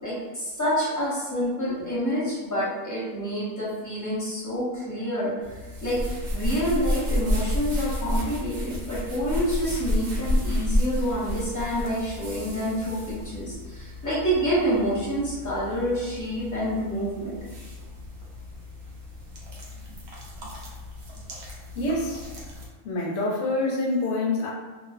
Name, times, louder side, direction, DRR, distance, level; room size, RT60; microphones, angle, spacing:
voice 1, 0.0-17.3, equal, 20° left, -9 dB, 0.6 m, -28 dB
sound 1, 5.4-22.7, left 1 dB, 65° right, 0.8 m, -31 dB
voice 2, 21.7-22.3 22.8-24.5, left 2 dB, 70° left, -2 dB, 0.8 m, -26 dB
2.4 x 2.1 x 2.4 m, 1.3 s
omnidirectional pair, 1.4 m